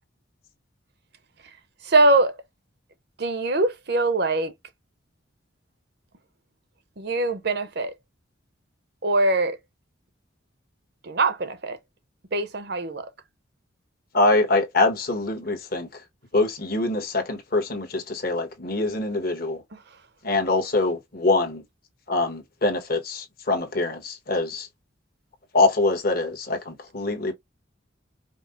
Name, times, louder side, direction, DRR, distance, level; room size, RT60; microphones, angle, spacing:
voice 1, 1.8-2.4 3.2-4.5 7.0-7.9 9.0-9.6 11.0-11.8 12.3-13.1, right 2 dB, 55° right, 0.7 m, -22 dB
voice 2, 14.1-16.0 16.3-19.6 20.2-21.6 22.1-24.7 25.5-27.3, left 2 dB, 45° left, 1.2 m, -24 dB
5.2 x 2.1 x 3.7 m
head